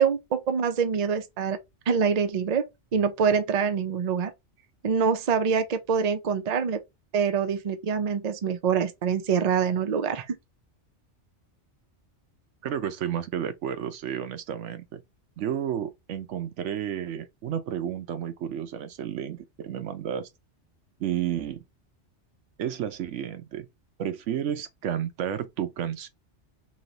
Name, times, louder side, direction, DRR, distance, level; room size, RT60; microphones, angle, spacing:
voice 1, 0.0-1.6 1.9-2.7 2.9-4.3 4.8-6.8 7.1-10.4, right 6 dB, 45° right, 0.6 m, -25 dB
voice 2, 12.6-15.0 15.4-20.3 21.0-21.6 22.6-23.7 24.0-26.1, right 9 dB, 80° right, 0.9 m, -31 dB
3.2 x 2.8 x 3.9 m
omnidirectional pair, 1.2 m